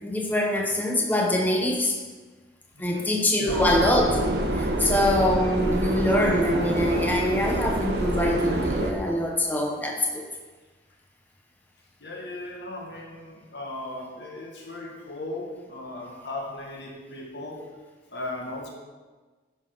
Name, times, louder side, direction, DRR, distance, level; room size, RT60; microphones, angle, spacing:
voice 1, 0.0-1.9 2.8-4.1 4.5-10.2, left 1 dB, 10° left, 0 dB, 0.8 m, -24 dB
voice 2, 2.7-3.6 4.8-4.9 12.0-17.6 18.1-18.7, left 2 dB, 85° left, 0 dB, 1.8 m, -37 dB
Subway metro underground, 3.5-8.9, right 1 dB, 75° right, 1.0 m, -26 dB
10.5 x 6.0 x 4.6 m, 1.3 s
head